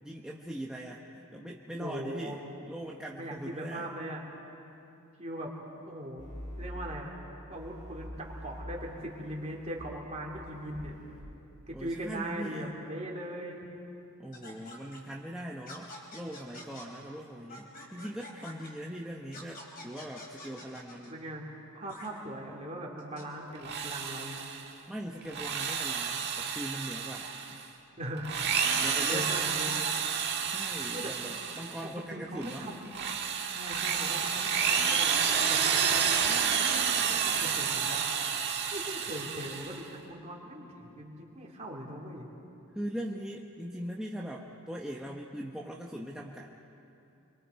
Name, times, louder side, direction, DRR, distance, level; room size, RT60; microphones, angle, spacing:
voice 1, 0.0-3.9 11.7-12.8 14.2-21.2 24.9-27.7 28.8-29.3 30.5-32.7 42.7-46.5, equal, 5° right, -2 dB, 0.9 m, -41 dB
voice 2, 1.8-2.4 3.1-4.2 5.2-5.5 5.8-6.3 6.6-7.1 7.5-11.0 11.7-13.7 21.1-21.4 21.7-24.4 28.0-28.3 28.6-29.8 30.9-31.1 32.1-32.9 33.5-38.0 38.7-42.3, right 1 dB, 30° right, -2 dB, 3.1 m, -40 dB
sound 1, 6.2-6.9 7.5-9.8 10.3-11.2, equal, 75° left, 5.4 m, -45 dB
sound 2, 14.3-15.0 15.7-16.9 17.5-18.7 19.3-21.1 21.9-22.1 23.0-23.2, left 1 dB, 40° left, 3.8 m, -47 dB
Drill, 23.6-24.7 25.2-27.6 28.2-31.9 32.4-39.8, right 7 dB, 50° right, 1.6 m, -30 dB
29.5 x 23.5 x 4.7 m, 2.8 s
head